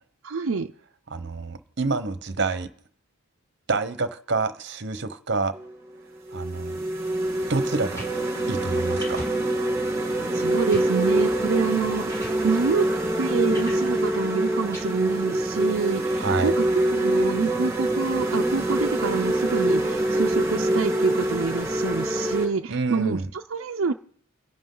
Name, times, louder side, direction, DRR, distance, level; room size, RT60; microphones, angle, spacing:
voice 1, 0.2-0.7 10.3-12.9 13.2-16.6 16.9-23.9, right 5 dB, 70° right, 4 dB, 0.5 m, -27 dB
voice 2, 1.1-2.7 3.7-5.6 6.3-6.8 7.5-8.1 8.5-9.3 16.2-16.5 22.7-23.3, right 3 dB, 55° right, 11 dB, 0.9 m, -27 dB
sound 1, 5.5-5.7 6.3-22.4, right 1 dB, 15° right, 3.6 m, -25 dB
sound 2, 7.8-8.1 9.0-9.3 9.8-9.9 10.6-10.9 11.7-11.8 12.1-12.4 13.5-13.8 14.7-14.8, equal, 15° left, 3.6 m, -38 dB
29.5 x 11.0 x 3.8 m, 0.66 s
head